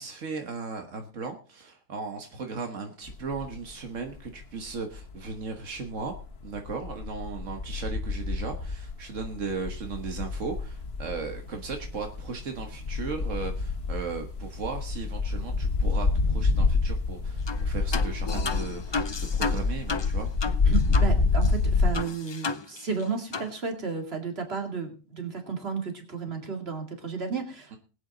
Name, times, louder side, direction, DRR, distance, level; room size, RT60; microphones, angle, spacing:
voice 1, 0.0-6.1 6.4-20.3 27.7-27.8, right 4 dB, 90° right, 4 dB, 1.8 m, -36 dB
sound 1, 3.1-3.7 4.1-5.4 5.9-21.9, left 4 dB, 55° left, 1.5 m, -28 dB
sound 2, 17.5-17.6 17.9-21.1 21.4-21.5 21.9-23.0 23.3-23.5, left 4 dB, 35° left, 0.4 m, -33 dB
voice 2, 20.6-27.8, right 5 dB, 55° right, 4 dB, 2.6 m, -33 dB
20.5 x 8.7 x 3.9 m, 0.36 s
omnidirectional pair, 1.3 m